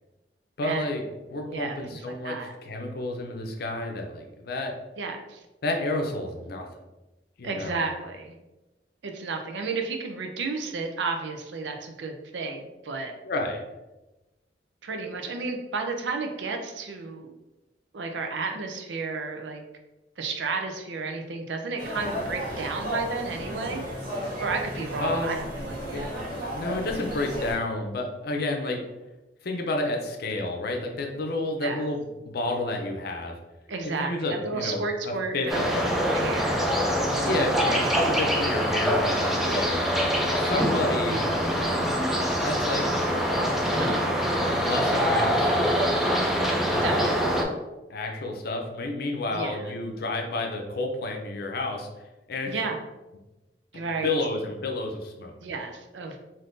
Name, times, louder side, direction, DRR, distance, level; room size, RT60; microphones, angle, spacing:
voice 1, 0.6-2.4 2.6-4.7 5.6-6.7 7.4-7.8 13.2-13.7 25.0-25.4 25.9-26.0 26.5-28.8 29.4-33.3 33.8-35.9 37.2-39.8 40.4-41.3 41.7-41.8 42.4-43.3 44.5-45.5 46.7-47.1 47.9-51.9 52.3-52.6 54.0-55.4, left 2 dB, 60° left, 2 dB, 0.5 m, -30 dB
voice 2, 1.5-2.0 2.2-2.5 5.0-5.4 7.4-8.3 9.0-13.1 14.8-17.3 17.9-19.6 20.2-23.8 24.4-26.1 31.6-31.8 33.7-36.7 37.4-38.0 40.5-40.7 43.7-44.7 46.8-47.4 49.3-49.7 52.5-52.8 53.7-54.1 55.4-56.2, right 4 dB, 85° right, 4 dB, 0.5 m, -32 dB
sound 1, 21.8-27.6, equal, 60° right, 1.3 m, -34 dB
sound 2, 35.5-47.4, equal, ahead, 0.4 m, -24 dB
3.5 x 2.6 x 2.5 m, 1.0 s
head